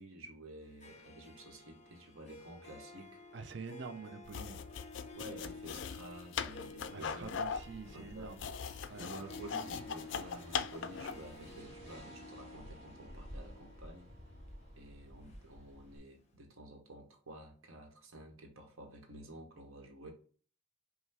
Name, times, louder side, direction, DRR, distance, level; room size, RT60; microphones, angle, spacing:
voice 1, 0.0-3.2 5.1-7.3 7.9-8.4 9.0-14.1 14.8-20.1, right 1 dB, 90° right, 1.1 m, -51 dB
Harp, 0.6-16.0, left 2 dB, 35° left, 0.7 m, -53 dB
voice 2, 3.3-4.6 6.9-8.4 8.9-9.1, right 4 dB, 60° right, 0.4 m, -46 dB
sound 1, 4.2-11.3, left 6 dB, 65° left, 0.3 m, -40 dB
sound 2, 7.1-16.0, equal, 30° right, 1.7 m, -54 dB
5.5 x 2.2 x 3.3 m
head